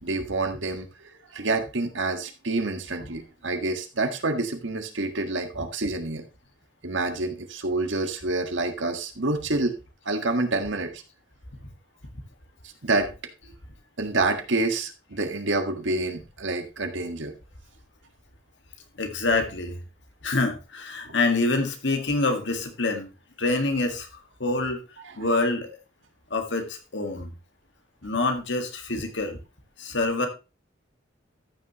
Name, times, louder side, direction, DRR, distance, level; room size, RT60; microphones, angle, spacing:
voice 1, 0.0-6.2 6.8-9.7 10.0-11.0 12.8-13.1 14.0-17.3 21.0-21.1 25.0-25.3, right 2 dB, 75° right, 6 dB, 1.6 m, -28 dB
voice 2, 19.0-19.8 20.2-23.1 23.4-24.1 24.4-24.8 25.2-25.8 26.3-27.3 28.0-29.4 29.8-30.3, left 2 dB, 65° left, 5 dB, 1.9 m, -26 dB
14.0 x 6.3 x 3.1 m, 0.29 s
head